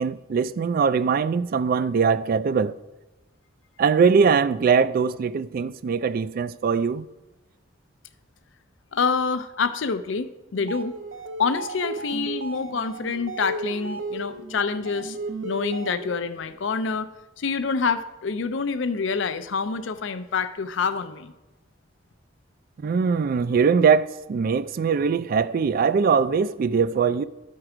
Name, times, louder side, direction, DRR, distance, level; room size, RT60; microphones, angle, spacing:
voice 1, 0.0-2.7 3.8-7.1 22.8-27.2, right 5 dB, 50° right, 0.3 m, -21 dB
voice 2, 8.9-11.0 11.4-15.2 15.4-17.1 17.4-21.3, left 5 dB, 70° left, 0.5 m, -27 dB
sound 1, 10.5-16.3, right 2 dB, 75° right, 0.8 m, -34 dB
12.0 x 4.6 x 4.9 m
head